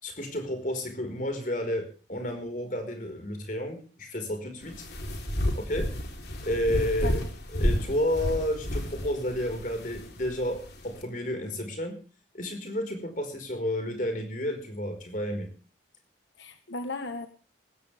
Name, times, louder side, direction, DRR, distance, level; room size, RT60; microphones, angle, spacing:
voice 1, 0.0-4.9 5.5-5.9 6.4-7.2 7.5-12.0 12.3-15.5, left 1 dB, 45° left, 5 dB, 4.8 m, -31 dB
sound 1, 4.6-11.0, equal, 60° left, 3.7 m, -32 dB
voice 2, 6.8-7.2 16.4-17.3, left 3 dB, 80° left, 9 dB, 1.3 m, -36 dB
19.5 x 16.5 x 3.5 m, 0.35 s
head